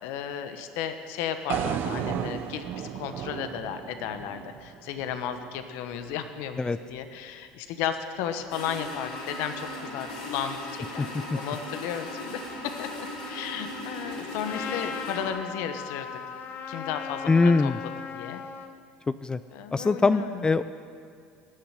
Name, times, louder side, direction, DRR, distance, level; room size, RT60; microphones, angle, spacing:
voice 1, 0.0-16.1 16.7-17.7 18.1-18.4 19.5-20.5, left 8 dB, 70° left, 9 dB, 1.1 m, -34 dB
sound 1, 1.5-5.6, right 9 dB, 55° right, 0.8 m, -34 dB
sound 2, 8.5-15.3, left 1 dB, 85° left, 3.5 m, -38 dB
Trumpet, 14.4-18.7, left 6 dB, 50° left, 1.2 m, -37 dB
voice 2, 17.3-17.8 19.1-19.4 19.7-20.6, left 3 dB, 20° left, 13 dB, 0.4 m, -22 dB
17.5 x 7.1 x 9.6 m, 2.2 s
supercardioid pair, 85°, 4 cm